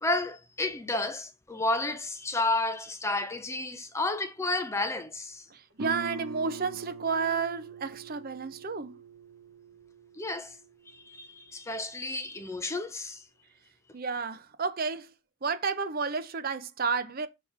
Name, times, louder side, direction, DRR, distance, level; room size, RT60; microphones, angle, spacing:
voice 1, 0.0-5.4 10.2-10.6 10.9-13.2, left 2 dB, 15° left, 0.6 m, -31 dB
voice 2, 5.5-8.9 13.9-15.1 15.4-17.3, right 5 dB, 45° right, 0.7 m, -31 dB
Guitar, 5.8-11.2, right 5 dB, 65° right, 1.0 m, -43 dB
6.2 x 3.5 x 5.5 m
head